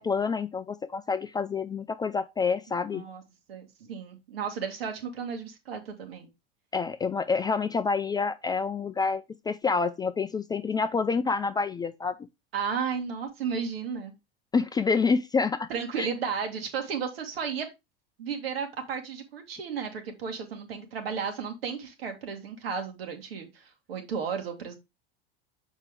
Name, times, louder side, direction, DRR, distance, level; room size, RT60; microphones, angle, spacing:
voice 1, 0.0-3.0 6.7-12.2 14.5-15.7 16.0-16.1, left 5 dB, 15° left, 0.4 m, -27 dB
voice 2, 3.5-6.3 12.5-14.1 15.7-17.7 18.2-24.8, right 6 dB, 70° right, 2.0 m, -34 dB
6.6 x 4.5 x 3.5 m
hypercardioid pair, 85°, 30 cm